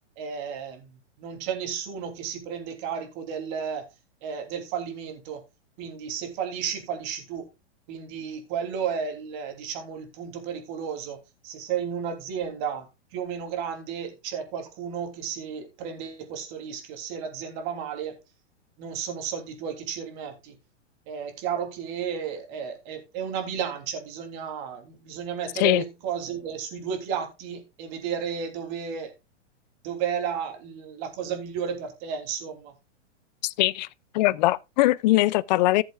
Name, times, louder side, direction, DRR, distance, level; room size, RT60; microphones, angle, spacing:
voice 1, 0.2-3.8 4.2-5.4 5.8-7.5 7.9-11.2 11.4-12.9 13.1-18.2 18.8-20.6 21.1-29.1 29.8-32.7, right 7 dB, 40° right, 3.2 m, -33 dB
voice 2, 33.4-33.9 34.1-35.8, left 18 dB, 40° left, 0.4 m, -21 dB
15.5 x 7.4 x 2.4 m
hypercardioid pair, 140°, 35 cm